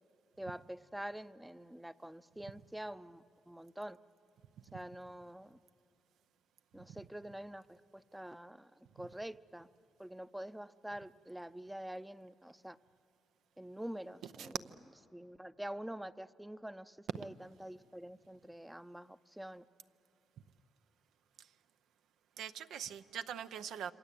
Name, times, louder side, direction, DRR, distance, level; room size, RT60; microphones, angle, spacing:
voice 1, 0.4-4.0 4.7-5.6 6.7-9.7 10.0-12.8 13.6-14.6 15.1-19.6, right 1 dB, 5° right, 15 dB, 0.6 m, -46 dB
voice 2, 22.4-23.9, right 8 dB, 85° right, 11 dB, 0.7 m, -43 dB
27.0 x 25.0 x 8.4 m, 2.4 s
cardioid pair, 95°, 0 cm